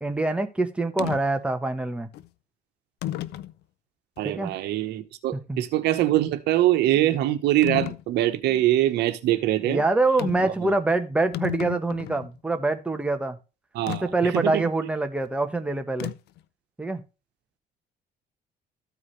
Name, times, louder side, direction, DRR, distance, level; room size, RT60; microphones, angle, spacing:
voice 1, 0.0-2.1 4.2-4.5 5.5-5.6 9.6-13.4 14.0-16.1 16.8-17.0, right 2 dB, 5° right, 1.1 m, -25 dB
sound 1, 1.0-1.2 2.1-2.3 3.0-3.5 4.2-4.3 7.6-8.0 10.2-10.5 10.9-11.0 11.2-12.3 13.9-14.0 16.0-16.4, left 14 dB, 80° left, 0.6 m, -32 dB
voice 2, 4.2-9.8 10.4-10.7 13.7-14.6, right 14 dB, 80° right, 1.1 m, -23 dB
14.0 x 4.9 x 3.2 m
cardioid pair, 110°, 17 cm